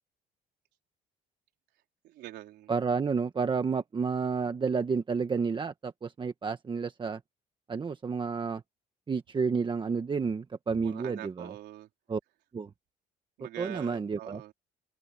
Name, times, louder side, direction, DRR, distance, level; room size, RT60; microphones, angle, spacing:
voice 1, 2.0-2.7 10.8-11.9 13.4-14.5, right 15 dB, 80° right, 4.4 m, -44 dB
voice 2, 2.7-7.2 7.7-8.6 9.1-11.5 12.1-12.2 12.5-12.7 13.6-14.4, right 5 dB, 30° right, 1.5 m, -30 dB
cardioid pair, 110°, 17 cm